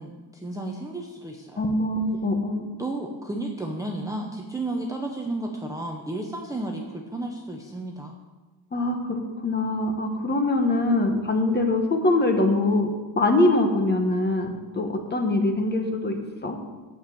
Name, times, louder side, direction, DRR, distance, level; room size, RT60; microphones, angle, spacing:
voice 1, 0.0-1.7 2.8-8.1, right 2 dB, 10° right, 0 dB, 0.6 m, -32 dB
voice 2, 1.6-2.7 8.7-12.9 13.2-16.6, left 2 dB, 20° left, 5 dB, 1.1 m, -23 dB
9.2 x 7.1 x 7.5 m, 1.3 s
cardioid pair, 175°, 45 cm